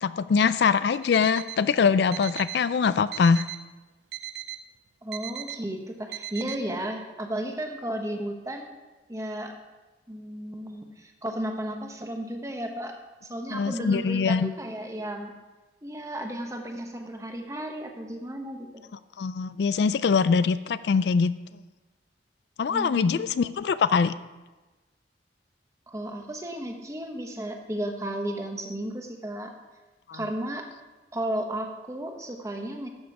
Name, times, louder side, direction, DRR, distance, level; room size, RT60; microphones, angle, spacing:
voice 1, 0.0-3.4 13.5-14.5 19.2-21.3 22.6-24.1 30.1-30.2, left 5 dB, 70° left, 15 dB, 0.4 m, -23 dB
Alarm, 0.9-1.6 2.1-2.6 3.1-3.6 4.1-4.6 5.1-5.6 6.1-6.6, right 12 dB, 65° right, 0.5 m, -38 dB
voice 2, 5.0-8.7 9.1-9.5 10.1-13.0 13.3-15.4 15.8-18.7 22.7-23.2 25.9-29.5 30.1-30.6 31.1-32.9, right 1 dB, 20° right, 3 dB, 1.1 m, -34 dB
12.5 x 7.3 x 4.8 m, 1.2 s
head